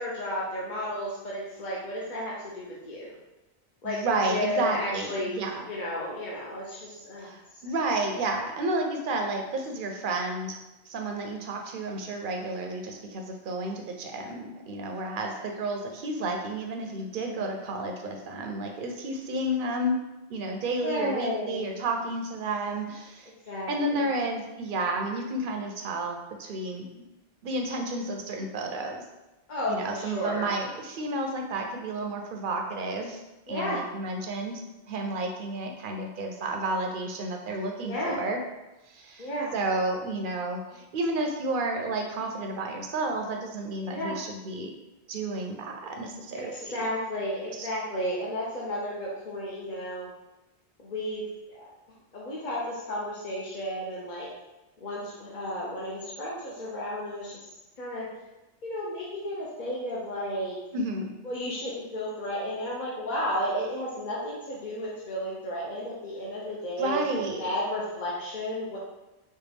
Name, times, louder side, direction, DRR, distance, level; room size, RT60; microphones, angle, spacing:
voice 1, 0.0-3.2 3.8-7.4 7.6-7.7 20.8-21.8 23.5-24.1 29.5-30.5 33.5-33.8 37.8-38.2 39.2-39.5 43.9-44.2 46.3-50.1 50.8-51.7 52.1-54.3 54.8-57.5 57.8-58.1 58.6-60.6 61.2-68.8, equal, 50° left, -6 dB, 0.7 m, -33 dB
voice 2, 3.8-5.6 7.2-10.6 10.9-20.0 20.3-23.3 23.7-27.0 27.4-29.0 29.7-34.6 34.9-38.4 38.9-44.7 45.1-46.7 47.6-47.7 60.7-61.1 66.8-67.5, right 2 dB, 60° right, 3 dB, 0.6 m, -31 dB
4.3 x 2.3 x 3.3 m, 1.0 s
omnidirectional pair, 1.1 m